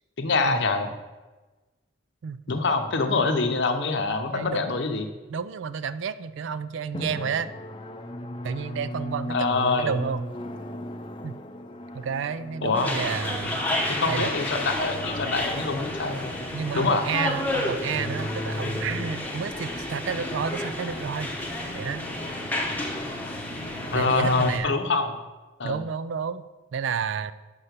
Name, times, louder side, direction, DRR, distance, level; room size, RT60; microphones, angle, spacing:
voice 1, 0.2-0.9 2.5-5.1 9.3-9.9 12.6-12.9 13.9-16.4 16.7-17.0 23.9-25.1 25.6-25.8, left 3 dB, 65° left, 6 dB, 0.8 m, -25 dB
voice 2, 4.3-4.6 5.3-7.5 8.4-10.3 11.2-11.4 11.9-13.6 14.1-14.3 16.5-21.5 21.7-22.0 23.9-24.7 25.6-27.3, right 6 dB, 75° right, 14 dB, 0.4 m, -31 dB
Drum, 6.9-16.2, left 1 dB, 25° left, 0.4 m, -38 dB
sound 1, 12.7-24.6, left 1 dB, 10° left, 0.8 m, -31 dB
5.8 x 5.5 x 6.6 m, 1.2 s
head